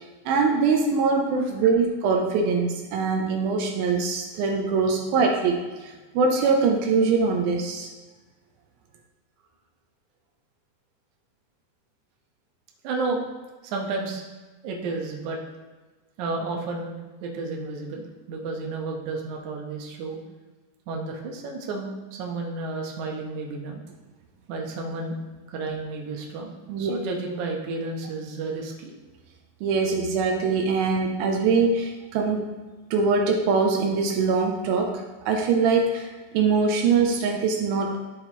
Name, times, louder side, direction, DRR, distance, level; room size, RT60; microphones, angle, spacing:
voice 1, 0.3-7.9 26.7-27.0 29.6-32.5 32.9-38.0, right 4 dB, 85° right, 2 dB, 2.5 m, -23 dB
voice 2, 12.8-13.2 13.6-14.2 14.6-15.4 16.2-20.2 20.9-23.8 24.5-25.2 25.5-28.9, right 3 dB, 65° right, 0 dB, 2.2 m, -32 dB
13.0 x 4.9 x 3.0 m, 1.3 s
omnidirectional pair, 4.3 m